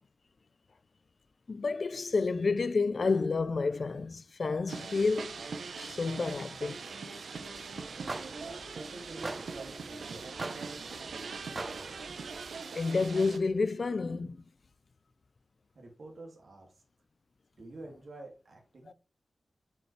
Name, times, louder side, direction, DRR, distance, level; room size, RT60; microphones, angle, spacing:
voice 1, 1.5-5.4 5.8-6.8 12.7-14.4, left 4 dB, 55° left, 0.5 m, -30 dB
sound 1, 4.7-13.4, right 4 dB, 85° right, 0.8 m, -42 dB
sound 2, 7.3-12.6, right 2 dB, 35° right, 0.7 m, -44 dB
voice 2, 8.3-10.3 10.7-11.3 11.7-11.9 15.7-16.7 17.6-18.9, right 2 dB, 65° right, 2.4 m, -48 dB
7.5 x 5.5 x 3.3 m
wide cardioid pair, 85°, 0 cm